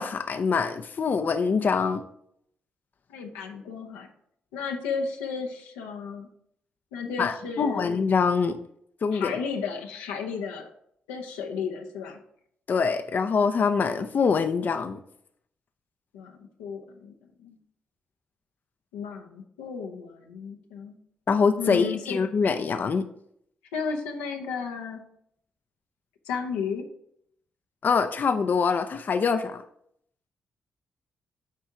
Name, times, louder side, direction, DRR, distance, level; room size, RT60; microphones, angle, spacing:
voice 1, 0.0-2.0 7.2-8.6 9.0-9.3 12.7-15.0 21.3-23.0 27.8-29.6, left 5 dB, 50° left, 9 dB, 0.5 m, -24 dB
voice 2, 3.1-4.1 4.5-6.3 6.9-7.9 9.1-10.7 11.1-12.2 16.1-17.1 17.4-17.6 18.9-21.0 21.6-22.2 23.7-25.0 26.3-26.9, left 5 dB, 90° left, 2 dB, 0.8 m, -33 dB
7.4 x 4.5 x 3.7 m, 0.70 s
hypercardioid pair, 45°, 4 cm